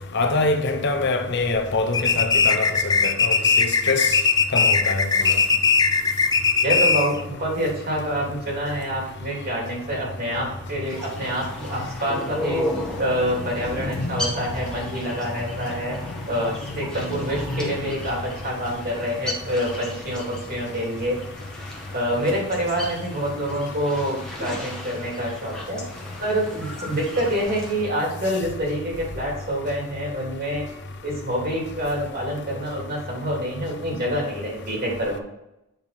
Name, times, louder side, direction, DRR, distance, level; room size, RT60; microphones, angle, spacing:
voice 1, 0.1-4.2 4.5-5.4 13.8-14.1 17.5-17.6, left 3 dB, 55° left, 0.9 m, -25 dB
sound 1, 1.9-7.2, left 5 dB, 20° left, 0.4 m, -19 dB
voice 2, 6.6-12.6 13.0-16.0 16.3-21.2 21.9-25.8 26.2-30.6 31.0-35.2, equal, 45° right, 3.1 m, -27 dB
sound 2, 10.8-27.9, left 1 dB, 5° left, 1.6 m, -36 dB
8.6 x 5.9 x 4.2 m
head